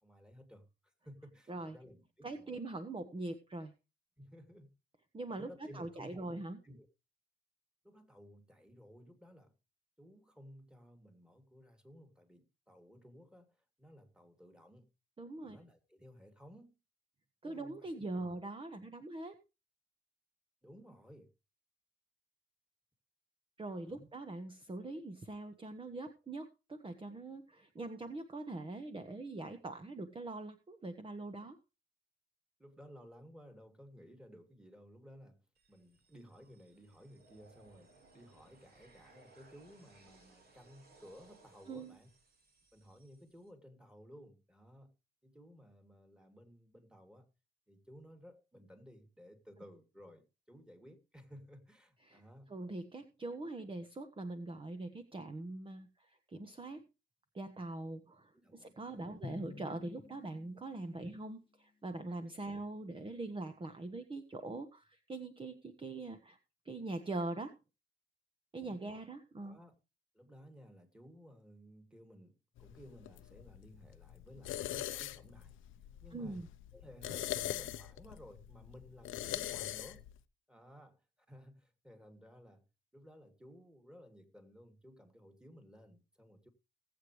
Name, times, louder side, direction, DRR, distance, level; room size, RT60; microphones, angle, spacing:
voice 1, 0.0-2.6 4.2-4.7 5.4-6.9 7.8-9.5 10.0-14.9 15.4-16.8 17.4-18.3 20.6-21.3 23.8-24.1 32.6-35.4 35.7-42.1 42.7-44.9 45.2-47.3 47.7-52.5 58.3-59.3 61.0-61.2 62.5-62.6 68.6-68.8 69.4-69.7 70.1-75.6 76.0-76.4 76.7-80.1 80.5-82.6 82.9-86.5, equal, 5° right, 2.8 m, -57 dB
voice 2, 2.2-3.7 5.1-6.6 15.2-15.6 17.4-19.3 23.6-31.6 41.7-42.0 52.1-52.2 52.5-56.8 57.3-61.4 61.8-66.4 66.6-67.6 68.5-69.6 76.1-76.5, right 2 dB, 25° right, 1.3 m, -42 dB
sound 1, 35.6-43.5, right 3 dB, 50° right, 4.4 m, -64 dB
Drum, 59.2-61.4, left 3 dB, 25° left, 0.8 m, -50 dB
sound 2, 72.6-80.2, left 14 dB, 80° left, 0.8 m, -43 dB
19.0 x 8.1 x 3.2 m
cardioid pair, 90°, 20 cm